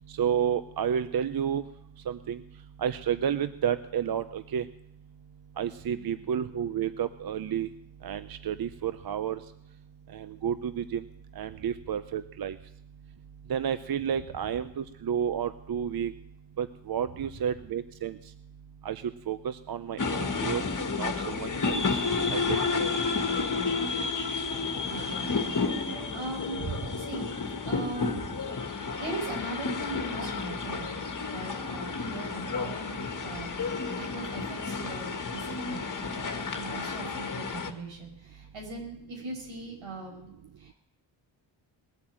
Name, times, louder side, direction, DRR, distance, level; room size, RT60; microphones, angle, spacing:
voice 1, 0.1-1.6 2.1-2.4 2.8-4.7 5.6-7.7 8.0-9.4 10.1-11.1 11.4-12.6 13.5-16.1 16.6-18.2 18.8-20.6 21.0-21.8 22.3-22.8, right 8 dB, 50° right, 12 dB, 0.7 m, -31 dB
voice 2, 5.9-6.2 17.2-17.3 20.2-20.3 24.8-27.3 27.6-33.5 33.9-40.7, right 3 dB, 80° right, 1 dB, 5.7 m, -40 dB
sound 1, 20.0-37.7, left 4 dB, 40° left, 1.8 m, -31 dB
20.0 x 8.5 x 7.6 m, 0.81 s
cardioid pair, 70°, 47 cm